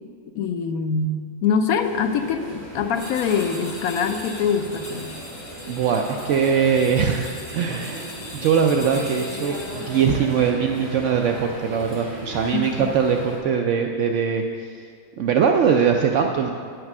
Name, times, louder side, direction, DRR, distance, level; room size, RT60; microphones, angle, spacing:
voice 1, 0.3-5.1 12.5-12.9, left 6 dB, 85° left, 7 dB, 1.1 m, -24 dB
sound 1, 1.8-13.4, equal, 35° right, 2.4 m, -37 dB
sound 2, 2.9-10.3, left 1 dB, 20° left, 1.5 m, -40 dB
voice 2, 5.7-8.0 8.3-14.8 15.2-16.5, right 6 dB, 65° right, 3 dB, 0.8 m, -21 dB
9.5 x 6.5 x 6.0 m, 2.3 s
omnidirectional pair, 1.5 m